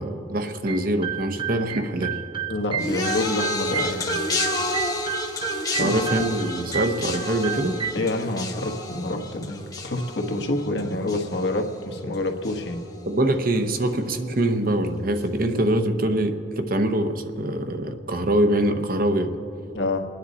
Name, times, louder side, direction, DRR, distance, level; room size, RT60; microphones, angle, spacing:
voice 1, 0.0-2.2 5.8-7.8 13.1-19.4, right 1 dB, 50° right, 7 dB, 0.8 m, -24 dB
sound 1, 0.7-7.9, right 9 dB, 30° right, 0.5 m, -32 dB
voice 2, 2.5-4.3 5.7-6.0 7.9-9.6 9.8-12.8 19.7-20.0, left 2 dB, 70° left, 4 dB, 1.3 m, -27 dB
sound 2, 2.8-12.1 12.4-13.0 13.8-13.9, left 2 dB, 20° left, 1.0 m, -31 dB
27.5 x 10.0 x 4.1 m, 2.7 s
head